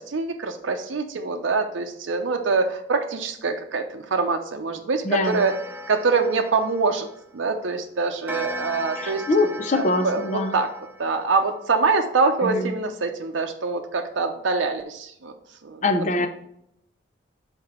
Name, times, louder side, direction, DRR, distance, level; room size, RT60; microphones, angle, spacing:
voice 1, 0.0-5.5 5.9-7.1 7.3-9.2 9.7-10.7 11.0-15.3 15.6-15.9 16.2-16.3, right 4 dB, 80° right, 4 dB, 0.6 m, -24 dB
voice 2, 5.0-5.4 9.0-10.5 12.4-12.7 15.8-16.3, left 2 dB, 40° left, 7 dB, 0.6 m, -23 dB
Clock, 5.2-7.5 8.3-11.7, equal, 10° right, 0.5 m, -37 dB
5.8 x 4.4 x 4.3 m, 0.75 s
head